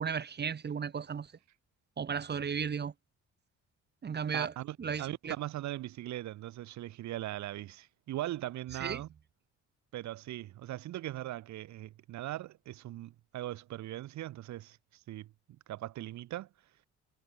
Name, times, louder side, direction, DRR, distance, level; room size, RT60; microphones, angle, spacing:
voice 1, 0.0-1.3 2.0-2.9 4.0-4.5 4.8-5.3 8.8-9.0, right 6 dB, 35° right, 0.9 m, -35 dB
voice 2, 4.3-9.1 9.9-14.8 15.1-16.5, right 14 dB, 65° right, 0.7 m, -40 dB
cardioid pair, 90°, 30 cm